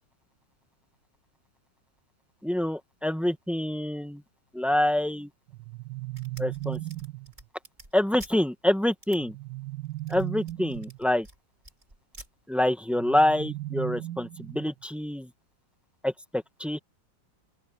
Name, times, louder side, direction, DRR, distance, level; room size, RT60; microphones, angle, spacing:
voice 1, 2.4-4.2 4.5-5.3 6.4-6.8 7.9-9.3 10.1-11.3 12.5-15.3 16.0-16.8, left 1 dB, ahead, 1.4 m, -26 dB
sound 1, 5.5-7.3 9.2-11.0 12.9-14.8, right 17 dB, 80° right, 1.7 m, -37 dB
sound 2, 6.1-8.4 9.0-9.2 9.9-11.4 11.6-12.3, right 1 dB, 25° right, 3.5 m, -49 dB
open air
omnidirectional pair, 2.1 m